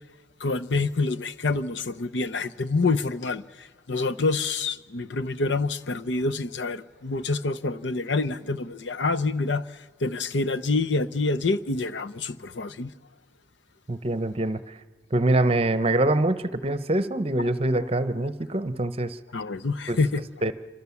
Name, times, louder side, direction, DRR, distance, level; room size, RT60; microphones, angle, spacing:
voice 1, 0.4-3.4 3.9-9.6 10.0-12.9 19.3-20.2, left 3 dB, 70° left, 0.7 m, -27 dB
voice 2, 13.9-14.8 15.1-19.2 19.9-20.0 20.4-20.5, right 2 dB, 30° right, 0.8 m, -24 dB
27.5 x 25.0 x 7.1 m
head